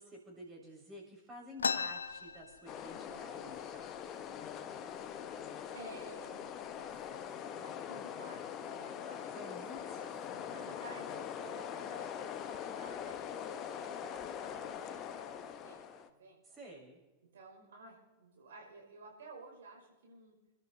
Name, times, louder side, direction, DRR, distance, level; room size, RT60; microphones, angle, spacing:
voice 1, 0.0-3.9 9.3-10.0 16.4-17.0, equal, 20° right, 0 dB, 6.6 m, -51 dB
sound 1, 1.6-3.2 3.6-3.7 3.9-4.5 5.1-5.3 6.0-6.2 6.6-7.1, left 5 dB, 70° left, 0.6 m, -37 dB
sound 2, 2.7-16.1, left 8 dB, 35° left, 1.0 m, -43 dB
voice 2, 5.7-6.5 6.7-7.2 7.6-9.6 10.3-16.6 17.3-20.3, right 3 dB, 65° right, 0 dB, 5.4 m, -54 dB
29.5 x 13.0 x 2.8 m, 1.1 s
figure-of-eight pair, 90°, 0 cm